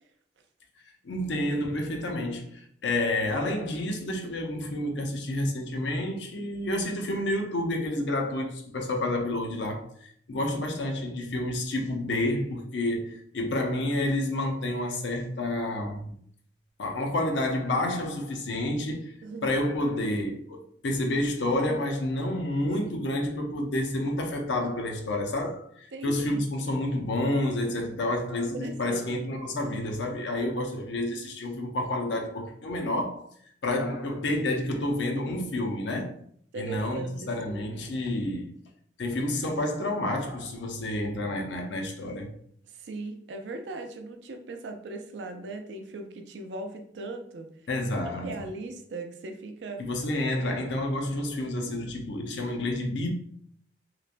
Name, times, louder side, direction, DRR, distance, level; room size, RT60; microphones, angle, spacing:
voice 1, 1.0-16.1 16.8-19.1 19.4-33.2 33.6-36.2 36.5-38.5 39.0-42.4 47.7-48.5 49.8-53.1, left 1 dB, 85° left, 0.6 m, -29 dB
voice 2, 19.2-19.6 25.9-26.4 28.5-29.1 36.5-37.7 42.7-47.5 48.2-49.8 50.4-50.7, right 2 dB, 75° right, 0.4 m, -38 dB
3.0 x 2.1 x 2.4 m
head